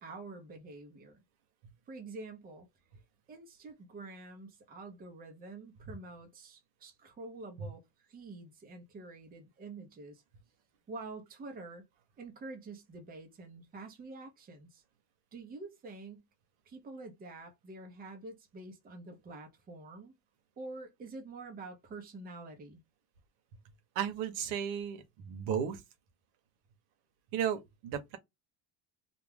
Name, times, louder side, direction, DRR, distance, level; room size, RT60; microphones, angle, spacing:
voice 1, 0.0-1.2 1.9-2.7 3.3-10.2 10.9-11.9 12.2-14.8 15.3-16.3 16.7-20.2 20.6-22.8, right 3 dB, 20° right, 0.7 m, -47 dB
voice 2, 23.9-25.8 27.3-28.2, right 8 dB, 85° right, 0.9 m, -34 dB
2.5 x 2.2 x 3.2 m
cardioid pair, 150°, 46 cm